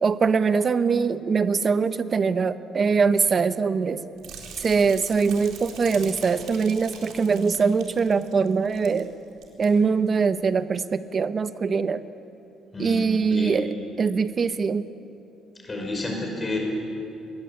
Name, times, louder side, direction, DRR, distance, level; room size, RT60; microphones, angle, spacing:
voice 1, 0.0-4.0 4.6-9.1 9.6-12.0 12.8-14.9, right 5 dB, 35° right, 12 dB, 0.9 m, -22 dB
sound 1, 4.2-9.0 9.3-9.7 10.1-10.3, right 6 dB, 75° right, 4.0 m, -42 dB
voice 2, 12.7-13.0 13.3-13.5 15.6-16.6, left 2 dB, 20° left, 1 dB, 5.7 m, -30 dB
22.0 x 21.0 x 8.6 m, 2.7 s
cardioid pair, 135°, 0 cm